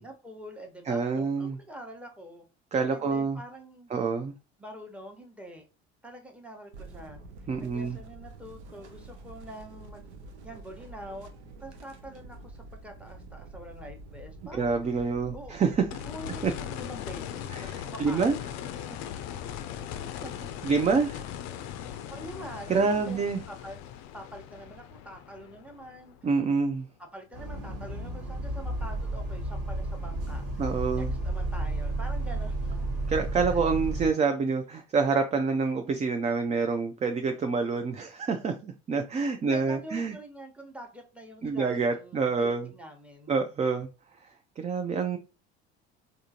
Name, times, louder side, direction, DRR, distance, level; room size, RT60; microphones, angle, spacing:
voice 1, 0.0-2.4 2.9-3.9 4.6-5.7 6.0-7.2 7.6-10.0 10.4-11.3 11.6-15.0 15.3-15.6 16.0-18.4 18.7-19.0 19.8-20.9 22.1-26.1 27.0-32.8 33.5-33.6 39.5-43.3, equal, 5° right, 1.0 m, -45 dB
voice 2, 0.9-1.6 2.7-3.4 3.9-4.3 7.5-8.0 14.5-15.8 16.4-16.5 17.5-17.7 18.0-18.3 20.6-21.2 22.7-23.4 26.2-26.9 30.6-31.1 33.1-40.1 41.4-42.7 43.3-43.9 44.6-45.2, right 5 dB, 20° right, 0.4 m, -27 dB
sound 1, 6.7-16.5, right 2 dB, 85° right, 0.6 m, -47 dB
sound 2, 15.9-26.8 29.1-29.2, left 10 dB, 55° left, 0.5 m, -39 dB
Bus, 27.3-34.1, right 2 dB, 60° right, 1.8 m, -32 dB
3.5 x 2.6 x 2.7 m
hypercardioid pair, 65°, 33 cm